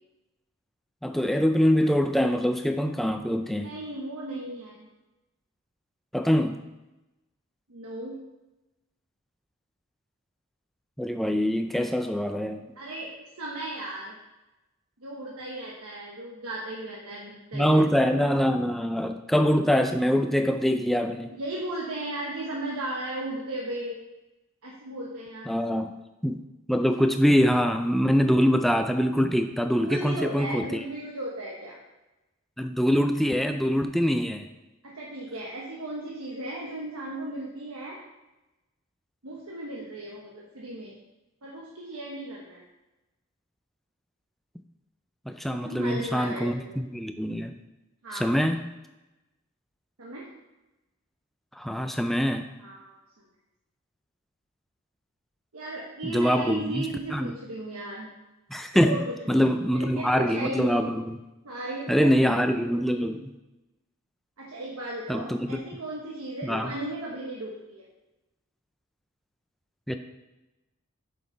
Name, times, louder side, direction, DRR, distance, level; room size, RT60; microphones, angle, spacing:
voice 1, 1.0-3.7 6.1-6.6 11.0-12.6 17.5-21.4 25.5-26.0 26.2-26.4 26.7-30.8 32.6-34.5 45.3-47.6 48.1-48.6 51.6-52.5 56.0-57.3 58.5-59.0 59.3-61.2 61.9-63.3 65.1-65.6 66.4-66.7 69.9-70.0, equal, ahead, 6 dB, 0.3 m, -24 dB
voice 2, 3.4-4.9 7.7-8.2 12.8-13.1 13.4-14.1 15.0-18.0 21.3-24.0 24.6-25.5 29.7-31.8 34.8-38.0 39.2-40.9 41.4-42.6 45.6-46.8 48.0-48.3 50.0-50.3 52.6-53.0 55.5-58.1 58.8-60.9 61.4-63.1 64.4-67.9, right 1 dB, 85° right, -4 dB, 1.1 m, -36 dB
7.6 x 5.8 x 4.0 m, 1.0 s
head